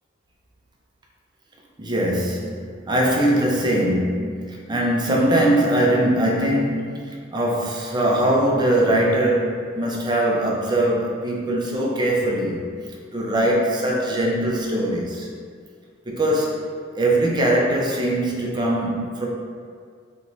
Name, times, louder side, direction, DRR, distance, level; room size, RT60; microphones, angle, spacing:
voice 1, 1.8-12.6 13.1-15.3 16.1-16.6 16.9-19.3, right 1 dB, 20° right, -2 dB, 0.6 m, -21 dB
3.3 x 3.0 x 4.0 m, 2.1 s
head